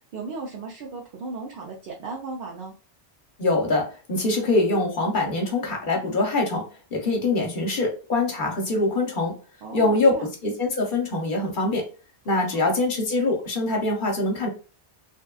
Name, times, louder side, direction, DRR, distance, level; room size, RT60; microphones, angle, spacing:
voice 1, 0.1-2.7 9.6-10.3 12.3-12.8, right 3 dB, 60° right, -1 dB, 0.7 m, -36 dB
voice 2, 3.4-6.6 6.9-9.4 9.7-11.9 12.3-14.5, left 2 dB, 55° left, 0 dB, 0.8 m, -24 dB
2.8 x 2.2 x 2.2 m, 0.36 s
omnidirectional pair, 1.2 m